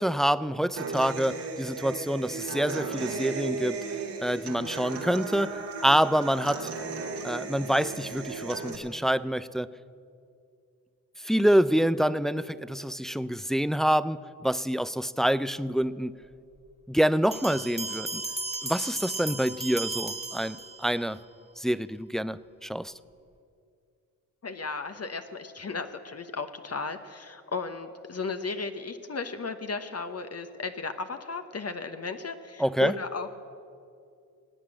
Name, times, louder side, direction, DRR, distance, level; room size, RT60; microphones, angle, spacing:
voice 1, 0.0-3.8 4.2-6.7 7.2-9.7 11.2-16.1 16.9-18.2 18.6-21.2 21.6-22.9 32.6-32.9, equal, ahead, 0.4 m, -26 dB
Human voice / Acoustic guitar, 0.8-8.7, right 4 dB, 70° right, 2.4 m, -35 dB
sound 1, 17.3-21.1, right 3 dB, 15° right, 1.4 m, -35 dB
voice 2, 24.4-33.3, left 4 dB, 35° left, 1.1 m, -35 dB
18.5 x 9.5 x 7.6 m
supercardioid pair, 45°, 41 cm